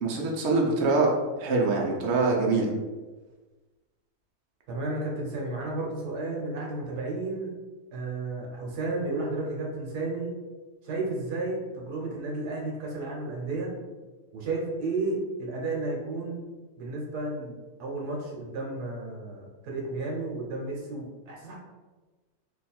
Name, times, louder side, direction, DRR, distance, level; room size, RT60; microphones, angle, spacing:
voice 1, 0.0-2.7, right 3 dB, 55° right, -1 dB, 0.8 m, -24 dB
voice 2, 4.7-7.5 7.9-10.3 10.8-13.7 14.3-16.4 16.8-21.6, right 2 dB, 80° right, -1 dB, 1.4 m, -32 dB
3.2 x 2.3 x 4.1 m, 1.3 s
omnidirectional pair, 1.7 m